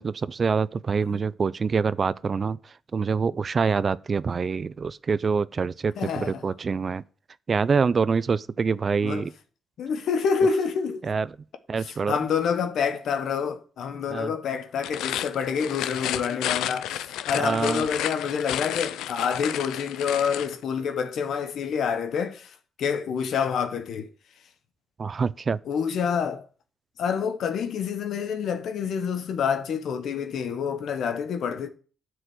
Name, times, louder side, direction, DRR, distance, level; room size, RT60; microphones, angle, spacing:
voice 1, 0.0-7.0 7.5-9.3 11.0-11.3 11.7-12.2 14.1-14.3 17.3-17.9 25.0-25.6, right 5 dB, 40° right, 0.4 m, -25 dB
voice 2, 6.0-6.4 9.0-9.3 9.8-11.1 11.8-24.1 25.6-26.4 27.0-31.7, left 6 dB, 70° left, 1.1 m, -27 dB
sound 1, 14.7-20.5, left 12 dB, 90° left, 0.5 m, -31 dB
9.7 x 4.9 x 8.0 m
cardioid pair, 90°, 0 cm